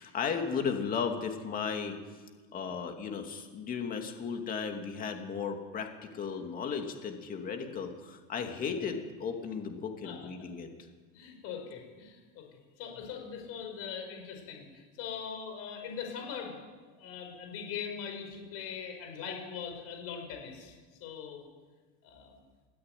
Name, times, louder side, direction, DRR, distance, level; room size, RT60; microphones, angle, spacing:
voice 1, 0.0-2.2 2.5-10.7, left 6 dB, 30° left, 4 dB, 2.5 m, -35 dB
voice 2, 11.1-12.4 12.8-16.6 16.9-21.4 22.0-22.4, left 7 dB, 50° left, 3 dB, 5.6 m, -41 dB
20.5 x 14.0 x 9.3 m, 1.4 s
supercardioid pair, 155°, 30 cm